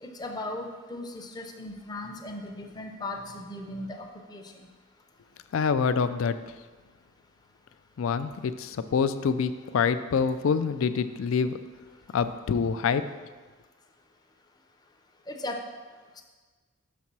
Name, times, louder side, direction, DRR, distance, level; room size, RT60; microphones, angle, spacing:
voice 1, 0.0-4.5 15.3-15.6, left 2 dB, 20° left, 3 dB, 0.6 m, -37 dB
voice 2, 5.5-6.4 8.0-11.6 12.1-13.1, left 6 dB, 65° left, 12 dB, 0.3 m, -26 dB
6.3 x 4.2 x 6.0 m, 1.4 s
head